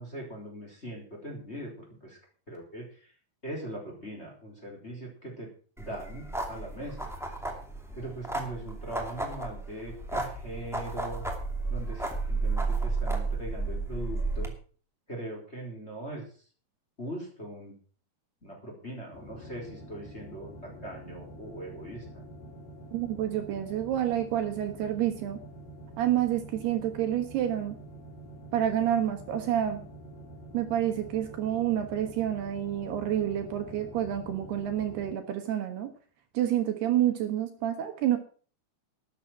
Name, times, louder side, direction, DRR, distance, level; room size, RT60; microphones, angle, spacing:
voice 1, 0.0-2.2 2.5-3.1 3.4-5.5 5.8-7.1 7.9-11.3 11.7-14.5 15.1-16.2 17.0-17.7 18.4-22.2, right 1 dB, 15° left, -1 dB, 3.7 m, -40 dB
sound 1, 5.8-14.5, right 3 dB, ahead, 0.6 m, -33 dB
sound 2, 19.1-35.1, right 1 dB, 85° left, 6.5 m, -47 dB
voice 2, 22.9-25.4 26.0-27.8 28.5-29.8 30.5-35.9 36.3-38.2, right 11 dB, 70° right, 6 dB, 3.1 m, -28 dB
12.5 x 10.5 x 6.0 m, 0.42 s
omnidirectional pair, 5.1 m